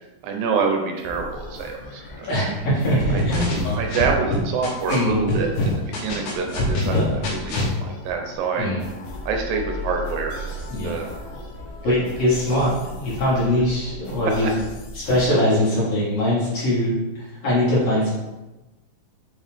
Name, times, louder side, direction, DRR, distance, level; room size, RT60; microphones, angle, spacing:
voice 1, 0.2-2.3 3.1-3.5 3.7-8.7 9.3-11.1 11.9-12.0 14.4-14.5 17.9-18.0, right 5 dB, 80° right, 2 dB, 2.4 m, -27 dB
sound 1, 1.0-15.3, left 2 dB, 85° left, 1.3 m, -38 dB
voice 2, 2.2-3.6 4.9-5.3 6.8-7.0 8.6-8.8 10.7-11.0 11.8-14.5 14.9-18.1, left 1 dB, 50° left, -8 dB, 2.7 m, -22 dB
sound 2, 3.0-5.0 5.3-7.7, left 2 dB, 65° left, 2.6 m, -24 dB
5.9 x 4.6 x 3.5 m, 1.1 s
omnidirectional pair, 4.1 m